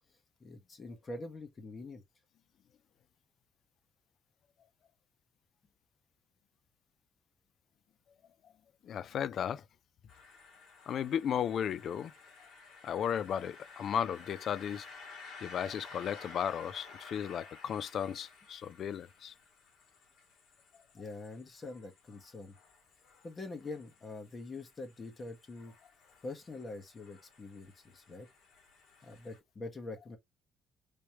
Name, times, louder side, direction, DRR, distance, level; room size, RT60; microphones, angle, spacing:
voice 1, 0.4-2.0 20.9-22.5 23.2-25.7 26.2-28.3 29.0-30.2, left 2 dB, 35° left, 1.2 m, -44 dB
voice 2, 8.8-9.6 10.9-12.1 12.8-14.9 15.4-19.3, left 9 dB, 60° left, 0.3 m, -35 dB
sound 1, 10.1-29.4, left 4 dB, 80° left, 1.8 m, -54 dB
3.3 x 3.1 x 2.9 m
cardioid pair, 100°, 0 cm